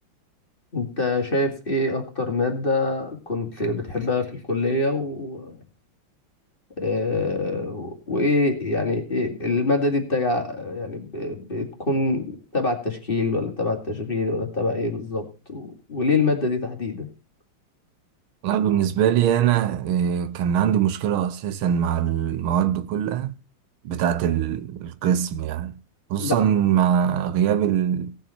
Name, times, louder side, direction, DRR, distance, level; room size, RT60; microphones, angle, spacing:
voice 1, 0.7-5.6 6.8-17.1 26.2-26.4, left 2 dB, 25° left, 2.4 m, -25 dB
voice 2, 18.4-23.3 23.8-25.7 26.1-28.1, right 9 dB, 80° right, 1.6 m, -22 dB
17.5 x 7.3 x 4.4 m
omnidirectional pair, 2.3 m